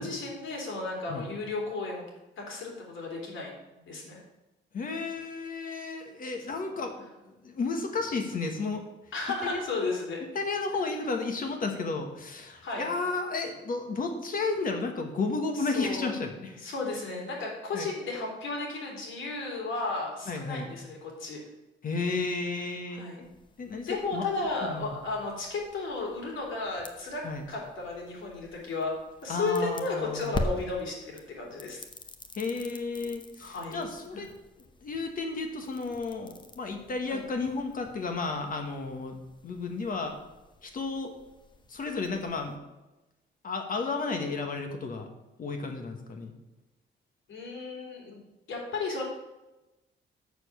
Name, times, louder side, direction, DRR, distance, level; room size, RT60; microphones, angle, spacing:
voice 1, 0.0-2.0 2.4-3.6 3.9-4.2 9.1-10.2 12.6-12.9 15.5-16.2 16.6-21.4 22.9-23.2 23.9-28.9 29.2-31.8 33.4-33.8 34.1-34.2 37.1-37.2 47.3-48.2 48.5-49.0, left 3 dB, 90° left, -1 dB, 3.3 m, -34 dB
voice 2, 4.7-6.9 7.4-8.8 9.5-9.6 10.3-16.6 17.7-17.9 20.3-20.7 21.8-23.3 23.6-24.2 24.7-24.9 27.2-27.4 29.3-30.4 32.4-34.3 34.8-39.2 39.4-40.2 40.6-41.1 41.7-42.6 43.4-45.1 45.4-46.3, left 3 dB, 45° left, 5 dB, 1.2 m, -32 dB
sound 1, 23.2-42.6, left 2 dB, 25° left, 0.7 m, -44 dB
6.9 x 6.7 x 6.8 m, 1.0 s
wide cardioid pair, 165°, 20 cm